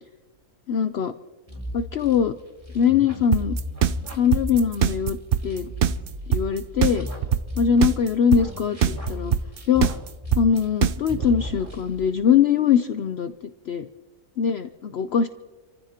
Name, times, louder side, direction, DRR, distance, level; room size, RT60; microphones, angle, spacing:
voice 1, 0.7-1.1 1.7-2.3 2.7-3.6 4.1-5.2 5.4-5.7 6.3-7.1 7.6-9.3 9.7-9.9 10.4-13.3 13.7-13.9 14.4-15.3, left 7 dB, 60° left, 10 dB, 0.8 m, -22 dB
sound 1, 1.5-8.0 8.3-10.8 11.1-12.1, left 1 dB, 25° right, 3.1 m, -35 dB
sound 2, 3.3-11.3, right 9 dB, 55° right, 0.6 m, -21 dB
28.5 x 15.0 x 2.9 m, 1.1 s
omnidirectional pair, 1.4 m